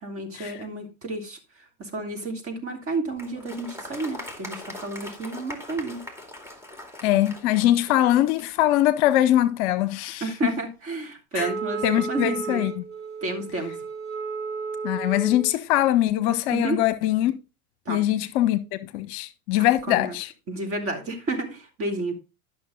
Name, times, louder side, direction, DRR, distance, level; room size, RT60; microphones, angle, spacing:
voice 1, 0.0-1.4 1.8-6.0 10.2-12.6 13.2-13.8 16.5-16.8 17.9-18.0 19.6-20.2 20.5-22.1, right 2 dB, 30° right, 2.9 m, -31 dB
Applause, 3.2-8.7, left 1 dB, 5° right, 2.3 m, -41 dB
voice 2, 7.0-10.3 11.4-11.5 11.8-12.8 14.8-17.4 17.9-20.3, left 13 dB, 50° left, 0.9 m, -22 dB
Wind instrument woodwind instrument, 11.4-15.5, right 5 dB, 65° right, 1.9 m, -33 dB
11.5 x 6.3 x 3.8 m
hypercardioid pair, 100°, 44 cm